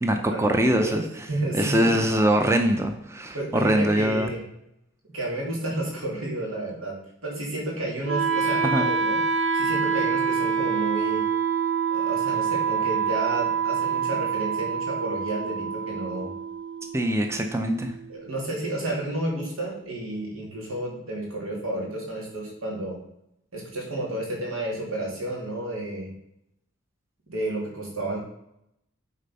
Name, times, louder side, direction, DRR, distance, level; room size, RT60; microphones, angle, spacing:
voice 1, 0.0-1.2 1.5-4.3 8.6-8.9 16.9-17.9, right 1 dB, 15° right, 5 dB, 0.5 m, -23 dB
voice 2, 0.7-1.0 1.3-2.0 3.3-4.4 5.1-9.2 9.5-11.2 11.9-16.3 18.1-23.0 23.5-26.1 27.3-28.2, right 1 dB, 85° right, -2 dB, 2.8 m, -31 dB
Wind instrument woodwind instrument, 8.0-18.1, right 6 dB, 70° right, 1.0 m, -26 dB
8.7 x 4.2 x 5.4 m, 0.79 s
head